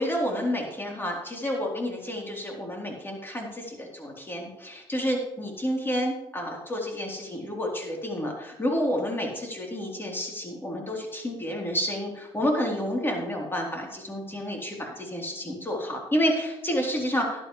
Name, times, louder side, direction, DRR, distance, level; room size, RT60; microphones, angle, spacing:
voice 1, 0.0-17.4, equal, 20° left, -1 dB, 3.7 m, -30 dB
11.5 x 11.5 x 3.3 m, 0.92 s
supercardioid pair, 65°, 12 cm